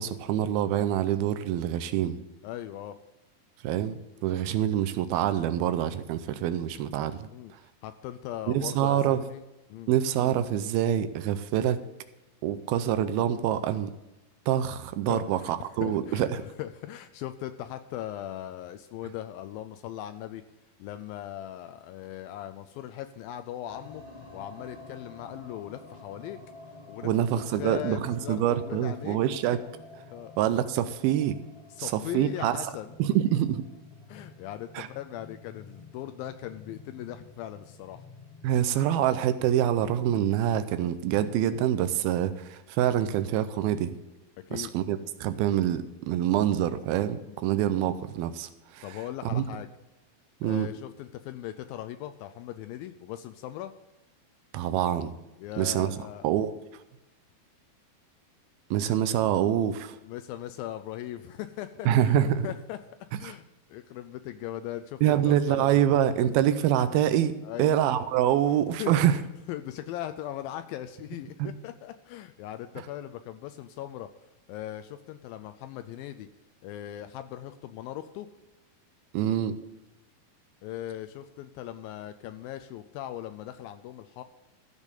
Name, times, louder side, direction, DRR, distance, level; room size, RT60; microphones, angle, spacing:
voice 1, 0.0-2.2 3.6-7.6 8.5-9.2 9.9-11.9 12.4-13.9 14.5-16.4 27.0-29.6 30.4-31.4 31.8-32.6 33.0-33.7 34.8-34.9 38.4-44.0 44.5-49.0 49.3-49.4 50.4-50.7 54.5-55.1 55.6-55.9 56.2-56.5 58.7-60.0 61.9-62.5 63.2-63.3 65.0-69.2 71.4-71.5 79.1-79.6, right 11 dB, 85° right, 11 dB, 2.4 m, -26 dB
voice 2, 2.4-3.0 7.3-7.5 7.8-9.4 9.7-9.9 15.1-15.5 15.8-16.3 16.6-20.4 20.8-24.0 24.3-26.4 26.9-27.1 27.5-29.2 30.1-30.3 31.7-32.9 34.1-38.0 44.4-44.7 47.3-47.4 48.8-49.7 50.4-53.7 55.4-56.3 60.1-62.2 62.4-62.8 63.2-63.4 63.7-65.9 67.4-67.7 68.8-68.9 69.5-74.1 74.5-76.3 76.6-78.3 80.6-84.2, left 12 dB, 80° left, 9 dB, 2.1 m, -39 dB
sound 1, 23.7-41.3, left 3 dB, 10° left, 1.6 m, -49 dB
14.5 x 5.3 x 8.1 m, 1.0 s
omnidirectional pair, 4.5 m